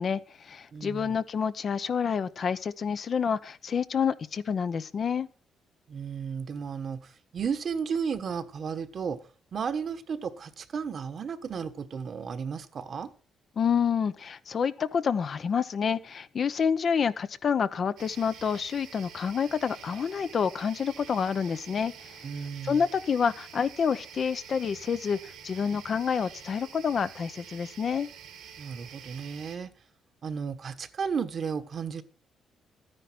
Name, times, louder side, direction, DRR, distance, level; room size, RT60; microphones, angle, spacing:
voice 1, 0.0-5.3 13.6-22.3 22.6-28.1, left 6 dB, 50° left, 0.8 m, -28 dB
voice 2, 0.7-1.2 5.9-9.2 9.5-13.1 22.2-22.8 28.6-29.7 30.2-32.0, right 6 dB, 50° right, 1.2 m, -34 dB
sound 1, 18.0-29.6, right 8 dB, 85° right, 2.2 m, -48 dB
12.5 x 9.9 x 6.0 m
cardioid pair, 90°, 0 cm